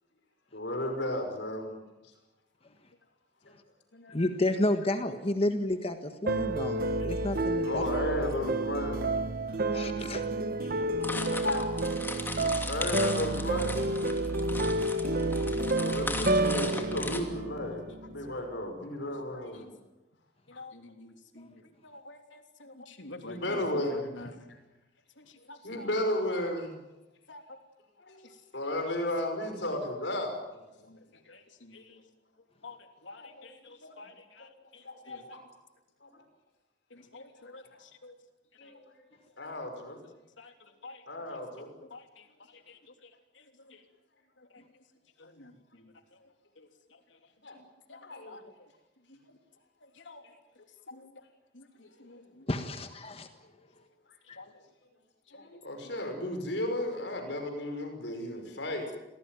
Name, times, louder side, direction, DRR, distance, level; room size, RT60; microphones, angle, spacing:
voice 1, 0.5-1.8 7.6-9.1 11.3-11.7 12.0-12.1 12.6-13.9 15.8-19.7 23.2-24.3 25.4-26.8 28.1-28.3 28.5-30.4 33.2-33.5 33.8-34.5 34.8-35.4 36.0-36.2 37.4-37.8 38.6-38.8 39.4-40.0 41.1-41.7 47.4-47.6 48.0-48.4 55.3-58.9, left 1 dB, 70° left, 5 dB, 5.7 m, -34 dB
voice 2, 4.1-7.8 9.7-10.2 21.3-21.4 52.5-53.3 54.3-54.4, left 1 dB, 30° left, 7 dB, 1.6 m, -31 dB
sound 1, 6.3-18.4, right 2 dB, 55° right, 1.2 m, -30 dB
voice 3, 9.7-10.2 10.6-11.3 13.4-13.5 15.1-15.9 17.9-18.0 18.3-18.5 19.3-19.7 20.5-24.5 25.2-25.9 27.3-27.4 28.2-28.4 28.8-29.3 30.8-32.0 32.6-35.4 36.9-38.2 38.6-38.7 40.4-41.4 41.8-43.8 44.4-44.8 45.2-46.3 46.6-47.2 47.5-48.7 49.1-49.4 49.8-50.2 50.6-51.2 51.5-52.5 54.4-54.6 55.3-55.5 55.8-55.9 57.3-57.4 58.8-58.9, left 2 dB, 85° left, 5 dB, 3.3 m, -50 dB
sound 2, 11.0-17.2, left 2 dB, 10° left, 2.8 m, -38 dB
26.5 x 18.5 x 9.3 m, 1.0 s
head